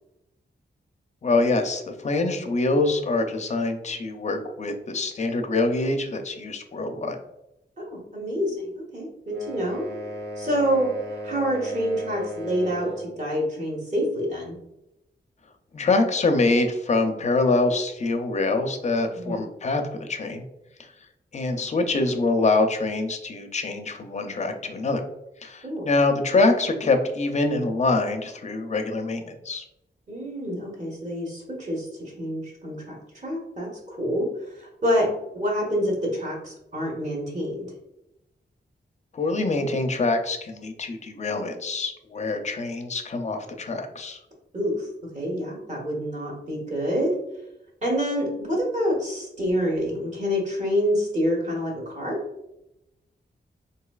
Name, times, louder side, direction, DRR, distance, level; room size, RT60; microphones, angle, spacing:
voice 1, 1.2-7.2 15.7-20.4 21.3-25.0 25.4-29.6 39.1-44.2, left 3 dB, 40° left, 5 dB, 0.5 m, -25 dB
voice 2, 7.8-9.9 10.4-14.6 19.1-19.4 25.6-25.8 30.1-33.0 33.2-34.3 34.5-37.7 44.5-47.2 47.8-52.2, equal, 40° right, -3 dB, 1.3 m, -27 dB
sound 1, 9.3-13.2, equal, 60° right, 0.7 m, -36 dB
3.8 x 2.7 x 2.3 m, 0.86 s
wide cardioid pair, 115°, 19 cm